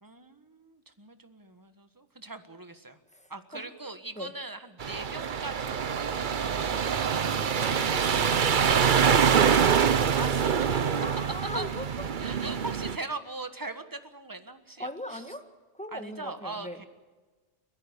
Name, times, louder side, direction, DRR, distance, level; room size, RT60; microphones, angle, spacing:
voice 1, 0.0-3.0 3.3-6.3 10.1-11.1 11.5-11.7 12.2-15.2 15.9-16.8, right 2 dB, 15° right, 9 dB, 1.5 m, -40 dB
voice 2, 3.1-3.7 4.2-4.3 7.4-8.6 8.9-9.7 10.9-11.9 14.8-15.5 15.7-16.9, equal, 5° left, 7 dB, 1.9 m, -40 dB
sound 1, 4.8-13.0, right 7 dB, 45° right, 0.9 m, -25 dB
30.0 x 11.5 x 9.7 m, 1.3 s
omnidirectional pair, 1.2 m